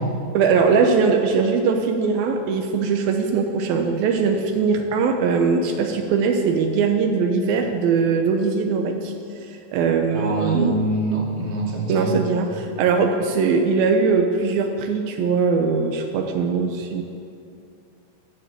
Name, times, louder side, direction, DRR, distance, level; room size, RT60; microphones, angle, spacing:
voice 1, 0.3-9.1 9.7-10.8 11.9-17.0, right 5 dB, 80° right, 4 dB, 2.7 m, -21 dB
voice 2, 10.1-12.2, right 1 dB, 35° right, -3 dB, 3.1 m, -24 dB
14.5 x 12.0 x 7.5 m, 2.5 s
omnidirectional pair, 4.2 m